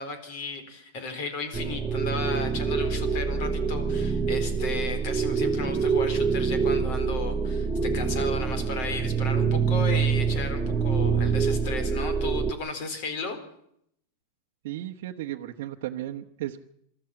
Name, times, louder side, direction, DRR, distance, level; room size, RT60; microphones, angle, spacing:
voice 1, 0.0-13.4, left 3 dB, 40° left, 9 dB, 3.9 m, -35 dB
sound 1, 1.5-12.5, right 5 dB, 10° right, 0.7 m, -26 dB
voice 2, 14.6-16.6, right 13 dB, 55° right, 0 dB, 1.1 m, -34 dB
25.0 x 13.5 x 8.9 m, 0.74 s
supercardioid pair, 175°, 0 cm